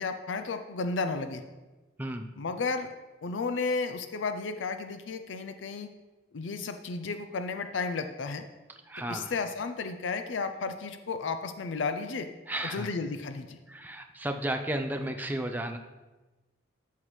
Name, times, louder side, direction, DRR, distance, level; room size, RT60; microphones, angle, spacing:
voice 1, 0.0-1.4 2.4-2.9 3.2-5.9 6.3-8.5 9.1-12.3 12.6-13.6, left 4 dB, 85° left, 9 dB, 0.5 m, -33 dB
voice 2, 8.9-9.3 12.5-12.9 13.7-15.8, right 1 dB, 10° right, 5 dB, 0.5 m, -33 dB
12.5 x 5.7 x 3.1 m, 1.2 s
head